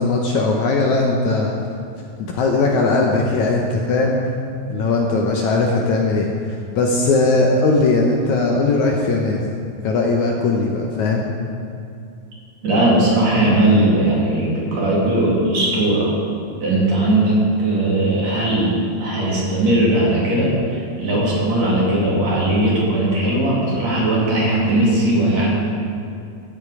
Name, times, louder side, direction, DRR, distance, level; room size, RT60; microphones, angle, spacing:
voice 1, 0.0-1.5 2.3-4.2 4.7-9.5 9.8-11.3, left 3 dB, 70° left, 0 dB, 2.0 m, -19 dB
voice 2, 12.6-16.1 16.6-25.5, right 1 dB, 50° right, -5 dB, 3.5 m, -18 dB
14.0 x 9.3 x 4.8 m, 2.5 s
omnidirectional pair, 4.1 m